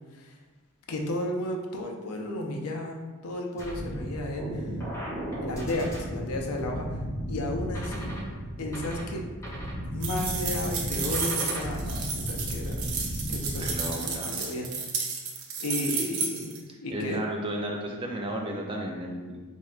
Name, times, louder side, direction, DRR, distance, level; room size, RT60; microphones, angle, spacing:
voice 1, 0.9-4.7 5.4-7.0 7.3-8.2 8.6-9.3 9.9-14.7 15.6-16.5 16.8-17.2, left 1 dB, 80° left, 2 dB, 0.5 m, -33 dB
sound 1, 3.6-13.8, equal, 15° left, 0.7 m, -34 dB
sound 2, 10.0-16.6, right 5 dB, 85° right, 0.6 m, -32 dB
voice 2, 13.6-14.4 16.9-19.3, right 1 dB, 25° right, 0 dB, 0.4 m, -33 dB
4.4 x 3.2 x 2.4 m, 1.3 s
head